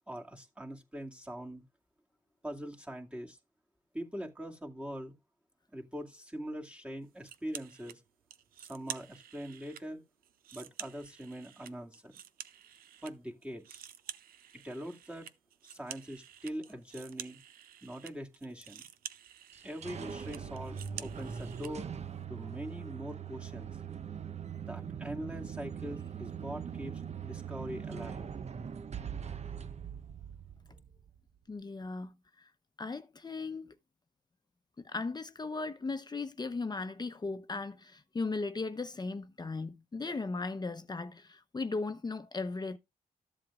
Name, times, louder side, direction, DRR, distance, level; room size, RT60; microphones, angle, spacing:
voice 1, 0.1-1.6 2.4-3.4 3.9-5.1 5.7-8.0 8.6-10.0 10.5-12.1 13.0-13.8 14.6-15.3 15.6-17.4 17.8-18.8 19.6-21.9 22.3-23.8 24.6-28.3, equal, 10° right, 2.3 m, -42 dB
sound 1, 7.2-8.0 8.3-9.8 10.2-13.1 13.4-21.7, right 10 dB, 80° right, 0.8 m, -48 dB
sound 2, 19.5-31.2, right 7 dB, 50° right, 0.9 m, -41 dB
voice 2, 31.5-32.5 32.8-33.7 34.8-42.8, left 3 dB, 30° left, 0.9 m, -37 dB
13.5 x 7.6 x 2.5 m
cardioid pair, 65°, 15 cm